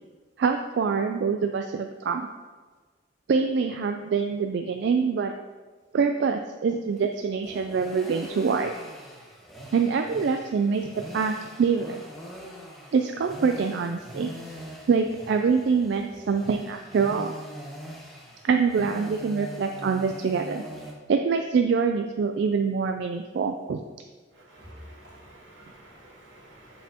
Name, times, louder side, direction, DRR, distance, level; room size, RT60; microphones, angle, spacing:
voice 1, 0.4-2.3 3.3-5.3 5.9-8.7 9.7-10.9 11.1-12.0 12.9-14.3 14.9-17.3 18.4-20.6 21.1-23.8, right 5 dB, 65° right, 5 dB, 0.3 m, -25 dB
sound 1, 6.9-20.9, equal, ahead, 1.1 m, -43 dB
voice 2, 24.5-26.5, right 1 dB, 85° right, -5 dB, 1.8 m, -48 dB
7.3 x 5.6 x 2.9 m, 1.4 s
head